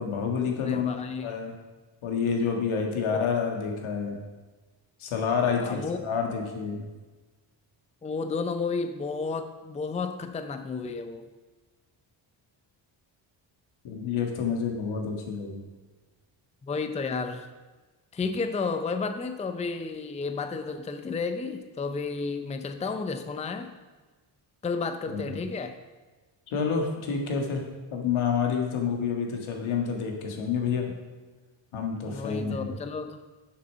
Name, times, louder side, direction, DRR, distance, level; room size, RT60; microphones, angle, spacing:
voice 1, 0.0-1.0 1.2-1.5 2.0-4.2 5.0-6.9 13.8-15.6 25.1-25.4 26.5-27.6 27.9-30.9 31.7-32.7, left 6 dB, 80° left, 2 dB, 1.7 m, -28 dB
voice 2, 0.6-1.3 3.1-3.3 5.6-6.0 8.0-11.3 16.6-17.5 18.1-23.7 24.6-25.8 32.1-33.2, left 4 dB, 15° left, 9 dB, 0.5 m, -32 dB
6.9 x 6.5 x 5.6 m, 1.3 s
cardioid pair, 85°, 48 cm